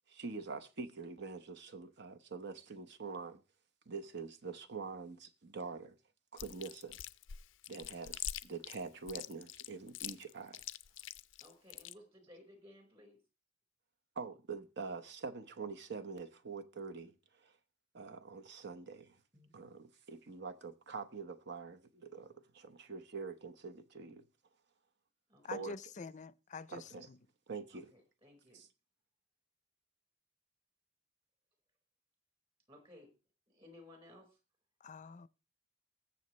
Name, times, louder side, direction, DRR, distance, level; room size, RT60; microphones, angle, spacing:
voice 1, 0.1-3.4 3.9-6.0 6.3-7.0 7.7-10.6 14.1-17.5 17.9-19.2 19.5-24.3 25.5-25.8 26.7-27.1 27.5-27.9 28.5-28.7, right 4 dB, 60° right, 0.9 m, -45 dB
Chewing mastication, 6.4-11.9, left 12 dB, 90° left, 0.5 m, -44 dB
voice 2, 11.4-13.2 19.3-19.5 25.3-25.4 27.7-28.7 32.7-33.1 33.5-34.4, left 1 dB, 30° right, 4.7 m, -58 dB
voice 3, 25.4-27.2 34.8-35.3, left 4 dB, 40° left, 0.5 m, -46 dB
20.5 x 7.2 x 3.2 m
head